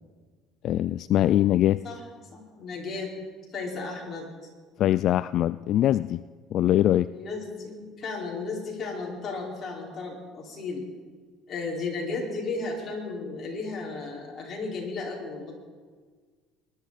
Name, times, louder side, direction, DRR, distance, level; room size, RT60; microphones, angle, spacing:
voice 1, 0.6-1.8 4.8-6.2 6.5-7.1, left 12 dB, 55° left, 15 dB, 0.3 m, -22 dB
voice 2, 2.3-3.1 3.5-4.3 7.1-10.9 11.5-15.5, left 3 dB, 40° left, -2 dB, 4.8 m, -34 dB
21.5 x 11.5 x 4.2 m, 1.5 s
cardioid pair, 115°, 0 cm